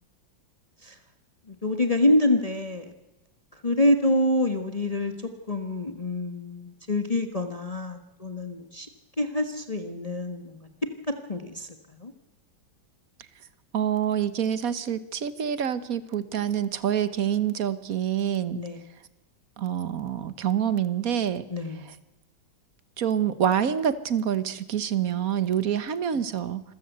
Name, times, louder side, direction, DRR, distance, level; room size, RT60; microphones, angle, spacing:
voice 1, 1.5-2.9 3.5-8.9 9.2-10.6 11.1-12.1 18.5-18.8 21.5-21.8, left 1 dB, 20° left, 7 dB, 1.4 m, -26 dB
voice 2, 13.7-18.6 19.6-21.5 23.0-26.6, right 9 dB, 50° right, 15 dB, 1.4 m, -26 dB
26.5 x 14.5 x 8.0 m, 1.0 s
omnidirectional pair, 2.1 m